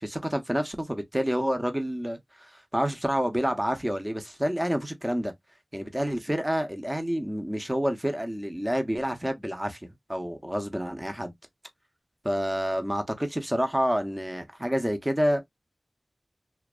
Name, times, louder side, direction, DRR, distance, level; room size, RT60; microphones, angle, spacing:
voice 1, 0.0-5.3 5.7-11.3 12.2-15.4, equal, 15° right, 0.6 m, -28 dB
2.5 x 2.2 x 2.3 m
wide cardioid pair, 70°, 0 cm